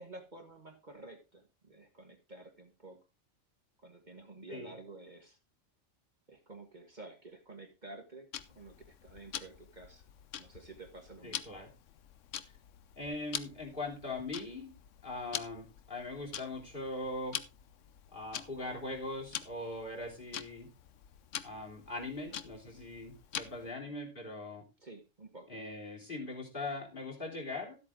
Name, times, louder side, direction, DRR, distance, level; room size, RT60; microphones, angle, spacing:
voice 1, 0.0-3.0 3.8-5.4 6.3-10.0 10.4-11.6 22.2-22.4 23.6-23.9 24.8-25.6, right 2 dB, 40° right, 3 dB, 1.7 m, -51 dB
Tick-tock, 8.3-23.7, left 9 dB, 80° left, 1.1 m, -45 dB
voice 2, 11.2-11.7 13.0-14.7 15.0-17.4 18.1-20.7 21.4-24.6 25.5-27.8, left 2 dB, 40° left, 2 dB, 3.4 m, -41 dB
13.0 x 8.2 x 3.7 m, 0.28 s
omnidirectional pair, 1.3 m